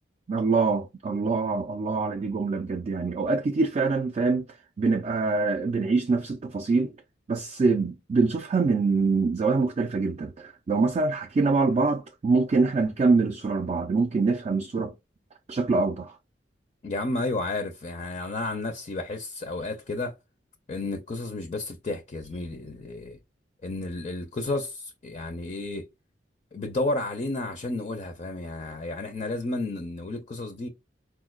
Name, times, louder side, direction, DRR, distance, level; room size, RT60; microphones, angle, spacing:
voice 1, 0.3-4.4 4.8-6.9 7.3-14.9 15.5-16.2, right 4 dB, 35° right, 0.3 m, -24 dB
voice 2, 16.8-20.1 20.7-23.2 23.6-25.9 26.5-30.7, left 2 dB, 35° left, 0.4 m, -32 dB
4.4 x 2.1 x 2.3 m
head